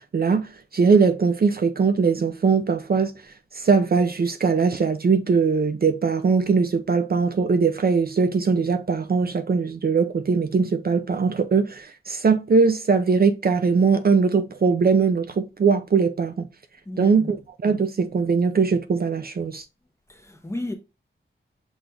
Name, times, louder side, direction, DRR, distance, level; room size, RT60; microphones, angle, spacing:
voice 1, 0.0-3.1 3.5-16.3 17.0-17.4 17.6-19.6, right 5 dB, 50° right, 0.4 m, -21 dB
voice 2, 16.9-17.4 20.1-20.7, left 1 dB, 15° left, 0.9 m, -33 dB
6.1 x 2.5 x 3.3 m
wide cardioid pair, 80°, 20 cm